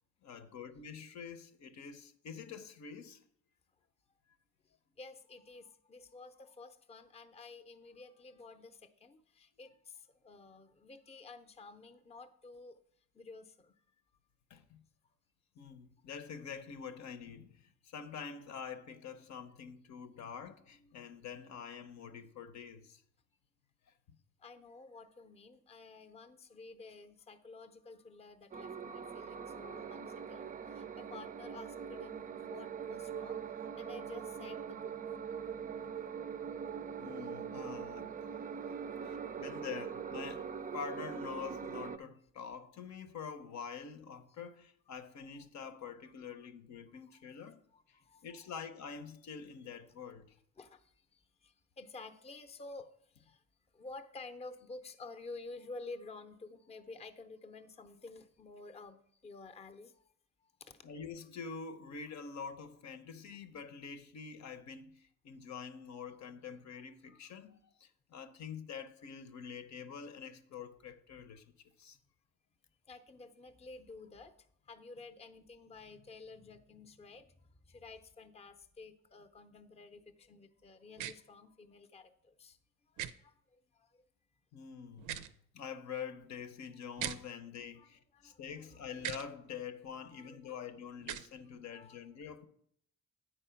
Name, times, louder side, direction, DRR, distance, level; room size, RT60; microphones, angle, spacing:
voice 1, 0.2-3.2 14.5-14.8 15.6-23.0 37.0-38.1 38.7-38.8 39.0-47.6 47.9-50.4 60.8-71.4 71.8-72.0 84.5-85.3 85.5-92.5, left 6 dB, 65° left, 0.8 m, -46 dB
voice 2, 5.0-12.8 13.1-13.7 24.4-33.4 33.7-34.9 36.5-36.6 38.9-39.4 45.8-45.9 46.9-47.2 47.7-48.4 50.6-50.8 51.4-52.9 53.2-53.4 53.7-59.9 60.7-60.8 72.9-74.3 74.7-82.6 83.2-83.3 83.8-83.9 87.6-88.4 88.7-88.9 89.7-90.8 91.7-92.0, left 3 dB, 20° left, 0.6 m, -51 dB
sound 1, 28.5-42.0, right 7 dB, 30° right, 0.4 m, -42 dB
sound 2, 81.0-81.1 83.0-83.1 85.0-85.3 87.0-87.2 89.0-89.2 91.0-91.3, right 11 dB, 85° right, 0.5 m, -39 dB
9.0 x 4.4 x 5.7 m
cardioid pair, 90°, 30 cm